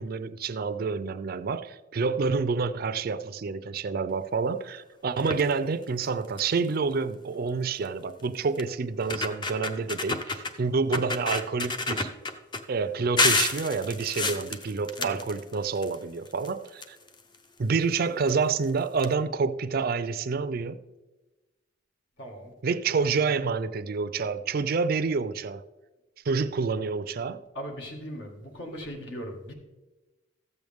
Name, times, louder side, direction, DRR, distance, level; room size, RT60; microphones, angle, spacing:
voice 1, 0.0-12.1 12.7-17.0 17.6-20.8 22.6-25.6 26.3-27.4, right 4 dB, 55° right, 0.4 m, -28 dB
sound 1, 5.2-5.5 6.0-6.1 6.4-6.7 7.8-7.9 8.6-8.7 9.0-10.5 10.9-12.6 13.2-15.9 16.2-17.4 18.3-18.4 18.6-18.7 19.0-19.1, left 3 dB, 25° left, 0.6 m, -29 dB
voice 2, 22.2-22.5 23.0-23.1 27.6-29.5, equal, 70° left, 1.8 m, -38 dB
14.0 x 7.7 x 3.5 m
head